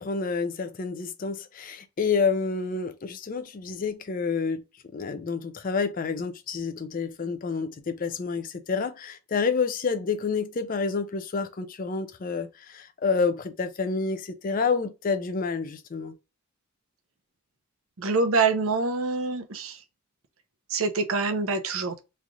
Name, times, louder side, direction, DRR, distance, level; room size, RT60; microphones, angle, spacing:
voice 1, 0.0-4.6 4.9-16.1, left 5 dB, 40° left, 0.4 m, -29 dB
voice 2, 18.0-19.8 20.7-22.0, right 4 dB, 70° right, 0.7 m, -25 dB
3.2 x 2.4 x 3.8 m
head